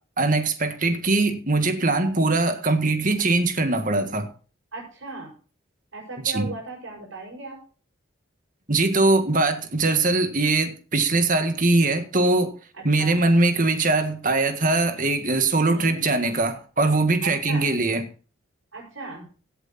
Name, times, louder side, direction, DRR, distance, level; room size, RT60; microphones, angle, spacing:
voice 1, 0.2-4.3 6.3-6.5 8.7-12.5 12.8-18.1, right 2 dB, 40° right, 1.7 m, -21 dB
voice 2, 4.7-5.3 5.9-7.6 12.7-13.2 15.6-16.0 17.2-17.7 18.7-19.3, right 3 dB, 90° right, 6.0 m, -37 dB
16.5 x 7.9 x 4.2 m
head